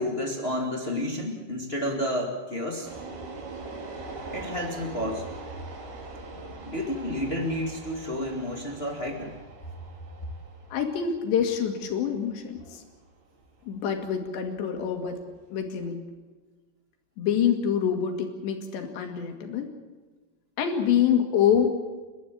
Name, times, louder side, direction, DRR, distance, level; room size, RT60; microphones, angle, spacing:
voice 1, 0.0-2.9 4.3-5.3 6.3-9.4, left 1 dB, 35° left, 2 dB, 0.9 m, -31 dB
sound 1, 2.8-15.9, right 3 dB, 65° right, 5.0 m, -43 dB
voice 2, 10.7-12.8 13.7-15.2 15.5-16.0 17.2-19.7 20.6-21.7, left 8 dB, 85° left, 5 dB, 4.5 m, -26 dB
30.0 x 12.0 x 8.8 m, 1.3 s
omnidirectional pair, 4.9 m